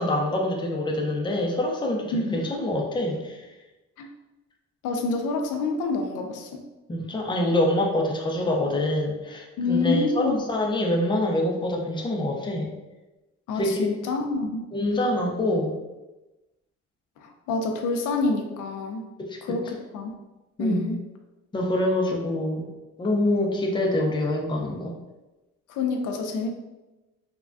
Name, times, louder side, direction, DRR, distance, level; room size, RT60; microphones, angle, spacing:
voice 1, 0.0-3.4 6.9-12.7 13.6-13.9 14.7-15.7 19.3-19.5 20.6-20.9 21.5-22.7 23.0-24.9, left 1 dB, 15° left, 0 dB, 0.5 m, -25 dB
voice 2, 2.1-2.4 4.0-4.1 4.8-6.6 9.6-10.4 13.5-14.7 17.2-19.1 19.4-20.1 20.6-21.0 25.7-26.5, left 3 dB, 85° left, 3 dB, 0.5 m, -27 dB
3.3 x 2.2 x 2.5 m, 1.1 s
cardioid pair, 90°, 30 cm